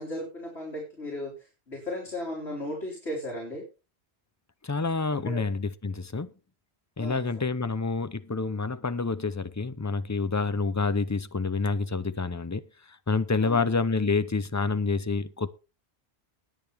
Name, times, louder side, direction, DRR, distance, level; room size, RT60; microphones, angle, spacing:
voice 1, 0.0-3.6 5.1-5.5 7.0-7.2 13.4-13.7, left 1 dB, 85° left, 3.8 m, -36 dB
voice 2, 4.6-6.3 7.0-12.6 12.9-15.5, left 4 dB, 20° left, 0.5 m, -28 dB
20.0 x 6.9 x 3.5 m
omnidirectional pair, 1.1 m